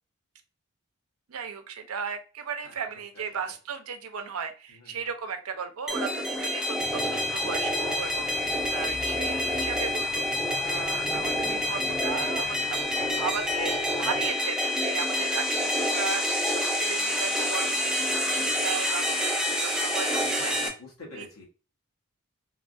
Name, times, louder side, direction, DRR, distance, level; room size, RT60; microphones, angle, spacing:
voice 1, 1.3-10.3 10.6-19.3 19.6-20.5 21.1-21.3, right 6 dB, 80° right, 7 dB, 0.5 m, -36 dB
voice 2, 4.7-5.1 18.3-18.6 20.1-21.4, left 1 dB, 85° left, -2 dB, 1.2 m, -45 dB
sound 1, 5.9-20.7, left 1 dB, 5° right, 0.3 m, -27 dB
sound 2, 6.8-14.3, equal, 25° left, 0.8 m, -45 dB
3.4 x 2.3 x 2.5 m, 0.34 s
head